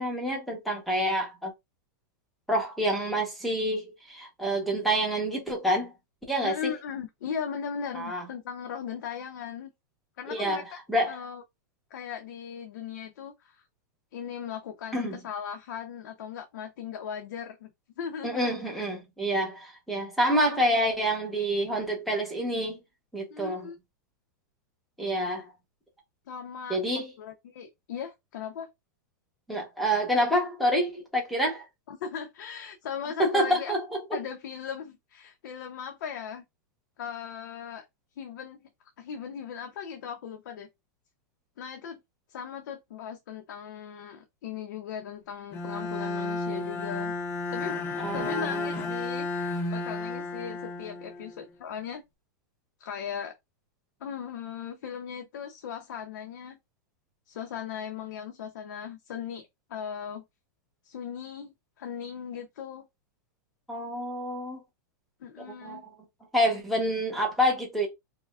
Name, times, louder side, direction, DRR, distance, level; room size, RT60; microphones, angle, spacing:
voice 1, 0.0-1.5 2.5-5.9 6.3-6.6 7.9-8.2 10.3-10.6 10.9-11.2 14.9-15.2 18.2-22.8 23.1-23.7 25.0-25.5 26.7-27.1 29.5-31.6 33.2-33.9 48.0-48.7 63.7-64.6 65.5-65.8 66.3-67.9, equal, ahead, 1.0 m, -27 dB
voice 2, 6.4-9.7 10.2-10.8 11.1-11.4 11.9-13.6 14.1-17.7 18.0-18.8 23.3-23.8 26.3-28.7 31.9-33.7 34.1-36.4 37.0-37.8 38.2-38.6 39.0-40.7 41.6-42.0 42.3-47.1 47.5-47.8 48.1-52.0 52.8-53.3 54.0-56.6 57.3-60.2 60.8-61.5 61.8-62.9 65.2-65.8, left 7 dB, 70° left, 0.7 m, -38 dB
Bowed string instrument, 45.5-51.5, left 3 dB, 20° left, 0.4 m, -33 dB
4.9 x 2.2 x 2.4 m
supercardioid pair, 170°, 11 cm